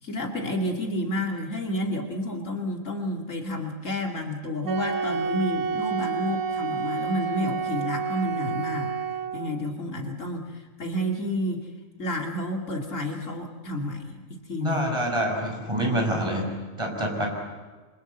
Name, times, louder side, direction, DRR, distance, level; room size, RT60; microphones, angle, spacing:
voice 1, 0.0-8.9 9.3-11.7 12.0-14.9, left 1 dB, 65° left, 2 dB, 3.0 m, -30 dB
Wind instrument woodwind instrument, 4.6-9.5, right 6 dB, 65° right, 1.9 m, -29 dB
voice 2, 14.6-16.5 16.8-17.3, right 1 dB, 20° right, 1 dB, 6.2 m, -26 dB
27.0 x 25.5 x 8.0 m, 1.4 s
omnidirectional pair, 1.4 m